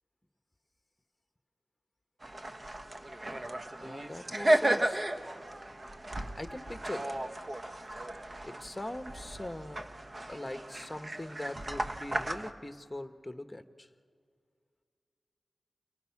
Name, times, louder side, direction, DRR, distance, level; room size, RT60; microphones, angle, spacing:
sound 1, 2.2-12.5, right 1 dB, 40° right, 1.3 m, -34 dB
voice 1, 3.8-5.0 6.3-7.2 8.4-9.9 10.3-13.9, left 1 dB, 15° left, 8 dB, 1.3 m, -41 dB
29.5 x 20.0 x 6.0 m, 2.1 s
cardioid pair, 50°, 0 cm